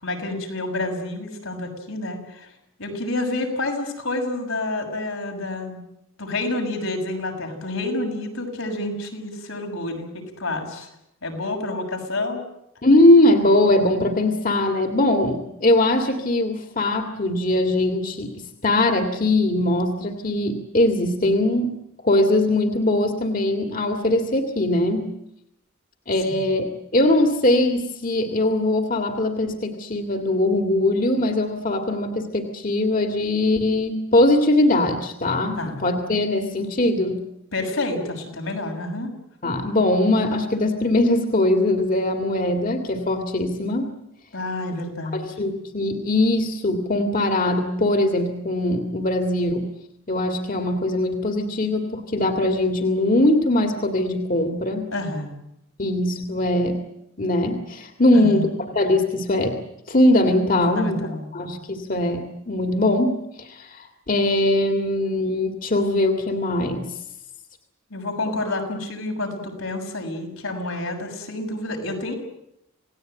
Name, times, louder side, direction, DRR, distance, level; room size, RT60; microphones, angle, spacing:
voice 1, 0.0-2.5 2.8-5.8 6.2-10.9 11.2-12.4 26.4-26.5 35.6-35.8 37.5-39.1 44.3-45.4 54.9-55.3 58.1-58.4 60.7-61.3 67.9-72.1, left 2 dB, 85° left, 3 dB, 6.7 m, -29 dB
voice 2, 12.8-18.3 18.6-21.8 22.0-25.1 26.1-37.2 39.4-43.9 45.1-49.7 50.1-54.9 55.8-56.8 57.2-59.6 59.9-61.1 61.3-66.9, left 1 dB, 40° left, 4 dB, 2.1 m, -21 dB
28.0 x 18.5 x 9.0 m, 0.80 s
head